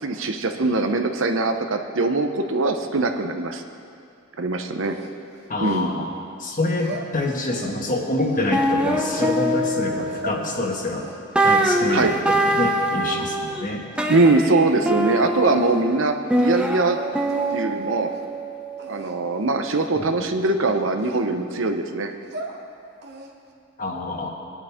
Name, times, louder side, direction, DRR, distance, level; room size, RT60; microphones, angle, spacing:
voice 1, 0.0-3.6 4.4-5.0 5.6-5.9 11.9-12.1 14.1-17.0 17.5-18.1 18.9-22.1, right 2 dB, 70° right, 5 dB, 0.9 m, -22 dB
sound 1, 4.8-6.2 6.7-7.8 8.2-9.3 9.9-10.5 10.9-12.6 12.9-13.5 14.0-14.4 15.0-15.1 15.4-16.0 16.4-16.5 16.7-16.9 17.3-17.7 18.0-18.3 18.8-19.2 19.7-20.0 20.4-21.6 22.1-22.6 23.0-23.5, right 2 dB, 55° right, 1.2 m, -40 dB
voice 2, 5.5-6.1 6.4-11.1 11.4-13.8 19.9-20.3 23.8-24.3, left 2 dB, 40° left, -1 dB, 1.7 m, -26 dB
sound 2, 8.2-8.3 8.5-10.9 11.4-13.6 14.0-19.2, right 1 dB, 5° right, 0.7 m, -24 dB
20.5 x 10.5 x 3.7 m, 2.4 s
head